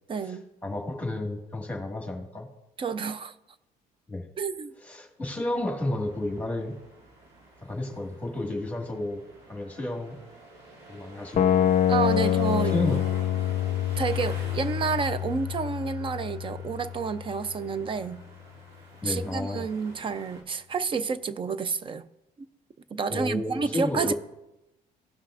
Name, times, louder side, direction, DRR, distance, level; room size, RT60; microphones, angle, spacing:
voice 1, 0.1-0.4 2.8-3.3 4.4-4.7 11.9-12.7 14.0-18.2 19.0-22.1 22.4-22.5 22.9-24.1, right 5 dB, 30° right, 0.5 m, -29 dB
voice 2, 0.6-2.5 4.1-4.3 4.9-6.7 7.6-9.2 9.5-10.2 10.9-11.7 12.7-13.0 19.0-19.6 23.1-24.1, left 1 dB, 10° left, 1.8 m, -31 dB
sound 1, 5.5-20.4, right 2 dB, 75° right, 2.0 m, -47 dB
sound 2, 11.4-17.4, left 10 dB, 45° left, 0.6 m, -26 dB
17.0 x 5.7 x 2.5 m
cardioid pair, 110°, 17 cm